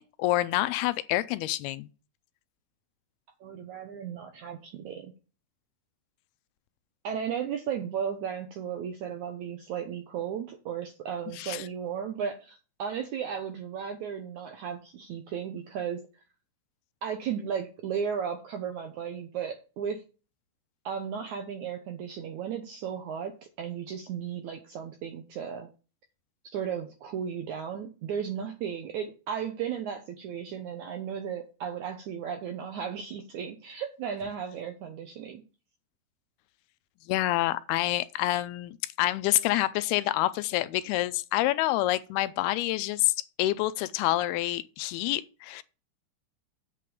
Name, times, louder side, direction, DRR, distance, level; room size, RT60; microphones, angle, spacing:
voice 1, 0.0-1.9 11.4-11.6 37.1-43.1 43.4-45.6, left 16 dB, 80° left, 2.5 m, -27 dB
voice 2, 3.4-5.1 7.0-16.0 17.0-20.0 20.9-25.7 26.4-35.4, right 7 dB, 75° right, 1.8 m, -35 dB
8.4 x 5.1 x 7.0 m
omnidirectional pair, 4.6 m